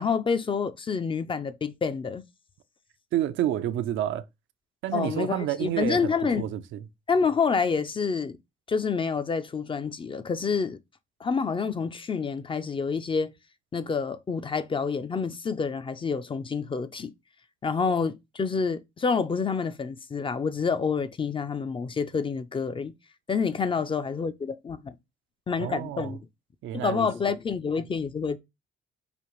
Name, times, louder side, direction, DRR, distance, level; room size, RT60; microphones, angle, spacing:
voice 1, 0.0-2.2 4.9-6.5 7.1-8.4 8.7-10.8 11.2-13.3 13.7-17.1 17.6-22.9 23.3-24.9 25.5-26.2 26.7-28.4, left 5 dB, 25° left, 0.4 m, -28 dB
voice 2, 3.1-4.2 4.8-6.8 25.6-26.1 26.6-27.1, right 12 dB, 75° right, 0.4 m, -29 dB
5.0 x 2.5 x 3.0 m
cardioid pair, 90°, 20 cm